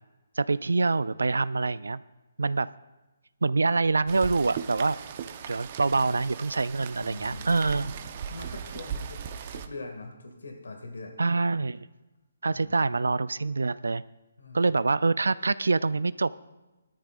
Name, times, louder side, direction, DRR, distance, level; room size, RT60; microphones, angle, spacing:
voice 1, 0.4-2.0 2.4-2.7 3.4-5.0 5.5-7.9 11.2-11.9 12.4-14.0 14.5-16.3, right 3 dB, 90° right, 18 dB, 0.3 m, -25 dB
Rain, 4.1-9.7, right 8 dB, 35° right, 0.7 m, -38 dB
voice 2, 7.0-7.9 8.3-9.2 9.5-11.2 12.5-13.0 14.4-14.7, left 2 dB, 85° left, 2 dB, 2.0 m, -42 dB
16.5 x 13.0 x 2.5 m, 1.1 s
hypercardioid pair, 160°, 0 cm